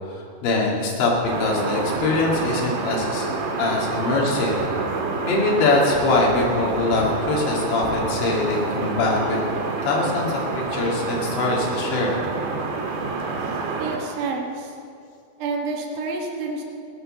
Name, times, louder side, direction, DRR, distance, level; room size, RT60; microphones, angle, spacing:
voice 1, 0.1-3.3 3.6-4.7 5.3-9.4 9.8-12.2, left 3 dB, 80° left, -2 dB, 4.6 m, -23 dB
sound 1, 1.3-14.0, right 4 dB, 80° right, 4.1 m, -28 dB
voice 2, 13.7-14.7 15.4-16.6, right 3 dB, 60° right, 0 dB, 2.4 m, -29 dB
16.5 x 10.0 x 6.6 m, 2.4 s
omnidirectional pair, 5.1 m